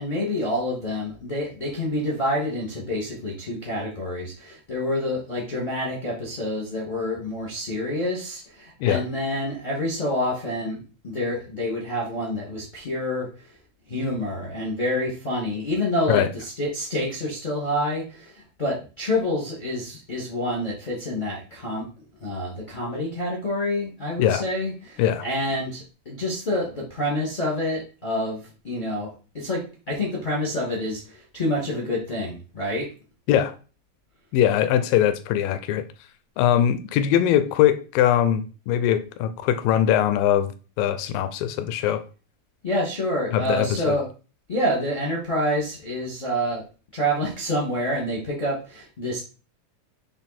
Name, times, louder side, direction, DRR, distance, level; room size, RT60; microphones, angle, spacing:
voice 1, 0.0-13.3 13.9-21.9 22.2-29.6 29.9-32.9 42.6-44.0 44.5-46.6 46.9-49.2, left 1 dB, 20° left, 1.3 m, -27 dB
voice 2, 34.3-35.8 36.4-40.5 40.8-42.0 43.3-44.0, left 10 dB, 80° left, 2.4 m, -21 dB
8.0 x 3.8 x 4.3 m
omnidirectional pair, 4.1 m